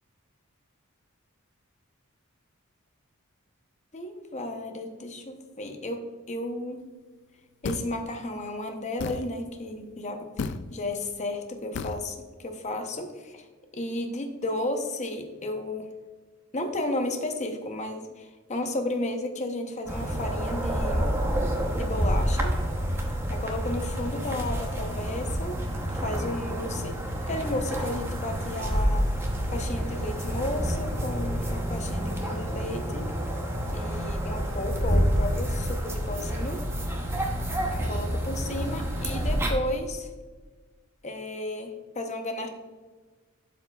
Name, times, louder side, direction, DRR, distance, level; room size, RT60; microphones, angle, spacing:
voice 1, 3.9-6.9 7.6-13.5 13.7-15.9 16.5-21.0 21.7-22.5 23.3-25.6 25.8-27.0 27.3-29.1 29.5-33.1 33.7-36.6 37.7-40.1 41.0-42.5, left 1 dB, 30° left, 5 dB, 0.8 m, -33 dB
sound 1, 7.6-8.0 9.0-9.3 10.4-10.6 11.7-12.0, left 4 dB, 55° left, 0.3 m, -32 dB
sound 2, 19.9-39.5, equal, 10° right, 0.8 m, -28 dB
12.0 x 4.7 x 2.3 m, 1.4 s
head